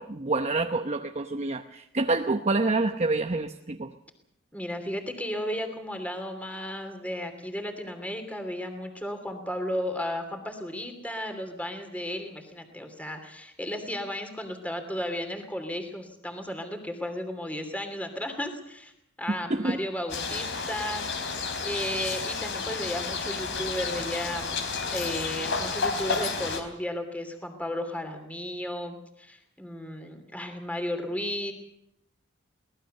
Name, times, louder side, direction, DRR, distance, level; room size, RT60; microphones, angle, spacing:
voice 1, 0.0-3.9 19.5-19.8, right 3 dB, 35° right, 5 dB, 0.9 m, -27 dB
voice 2, 4.5-18.9 19.2-21.3 21.6-24.6 24.9-31.5, left 1 dB, 5° left, 5 dB, 2.9 m, -34 dB
sound 1, 20.1-26.6, left 4 dB, 60° left, 3.7 m, -31 dB
24.0 x 19.0 x 6.7 m, 0.77 s
head